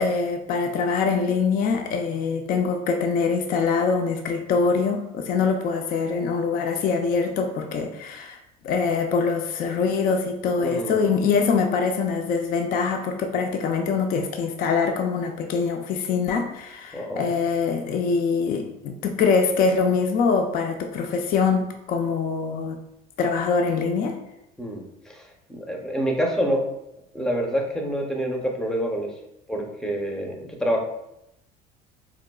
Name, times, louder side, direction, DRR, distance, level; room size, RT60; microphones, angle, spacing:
voice 1, 0.0-8.4 8.6-22.8 23.2-24.2, left 5 dB, 50° left, 4 dB, 0.4 m, -24 dB
voice 2, 10.6-11.0 16.9-17.3 24.6-26.6 27.1-29.1 29.5-30.8, equal, 5° left, 1 dB, 0.5 m, -27 dB
3.8 x 2.3 x 2.2 m, 0.82 s
supercardioid pair, 100°, 19 cm